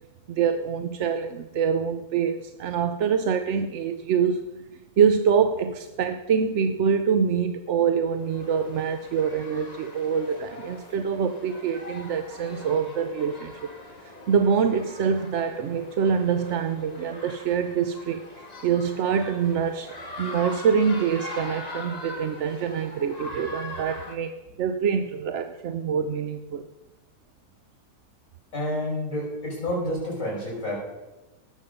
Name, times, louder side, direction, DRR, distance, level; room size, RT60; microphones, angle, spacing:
voice 1, 0.3-4.6 5.0-13.5 14.0-24.3 24.6-26.6, right 6 dB, 60° right, 8 dB, 0.8 m, -25 dB
sound 1, 8.1-24.2, left 2 dB, 25° left, 1.6 m, -41 dB
voice 2, 28.5-30.8, left 1 dB, 55° left, -4 dB, 6.3 m, -29 dB
18.5 x 7.4 x 5.3 m, 1.1 s
omnidirectional pair, 1.6 m